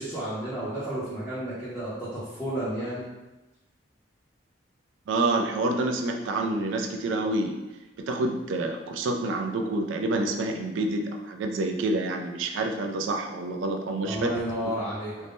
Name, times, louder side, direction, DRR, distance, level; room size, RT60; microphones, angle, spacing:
voice 1, 0.0-3.1 14.0-15.3, right 1 dB, 5° left, -12 dB, 0.6 m, -32 dB
voice 2, 5.1-7.6 8.0-14.3 14.6-14.7, right 2 dB, 80° right, 4 dB, 0.3 m, -28 dB
2.6 x 2.1 x 3.4 m, 1.1 s
head